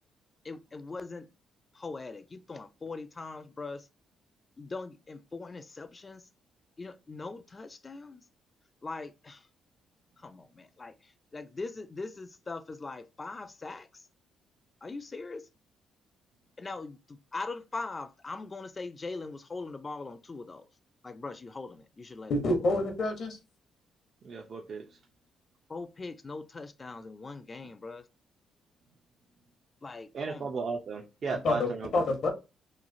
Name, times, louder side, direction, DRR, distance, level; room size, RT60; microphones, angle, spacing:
voice 1, 0.4-1.3 1.8-3.8 4.6-6.2 6.8-8.2 8.8-9.4 10.2-10.9 11.3-13.9 14.8-15.5 16.6-20.6 21.0-22.6 25.7-28.0 29.8-30.5, left 3 dB, 30° left, 0.3 m, -41 dB
voice 2, 22.3-23.4 31.4-32.3, left 2 dB, 65° left, 0.8 m, -27 dB
voice 3, 24.2-25.0 30.1-32.0, right 4 dB, 50° right, 0.4 m, -35 dB
2.9 x 2.4 x 2.5 m
cardioid pair, 90°, 0 cm